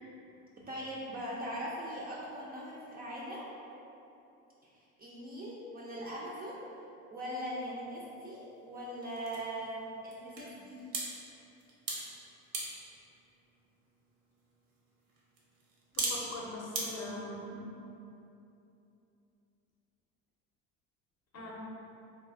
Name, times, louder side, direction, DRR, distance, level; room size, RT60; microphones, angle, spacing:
voice 1, 0.6-3.5 4.7-6.6 7.1-10.9, equal, 25° right, -6 dB, 0.4 m, -40 dB
sound 1, 7.5-16.9, right 3 dB, 70° right, 0.8 m, -43 dB
voice 2, 16.0-17.5 21.3-21.5, left 2 dB, 40° left, -3 dB, 0.6 m, -41 dB
3.2 x 2.2 x 2.4 m, 2.8 s
hypercardioid pair, 75°, 40 cm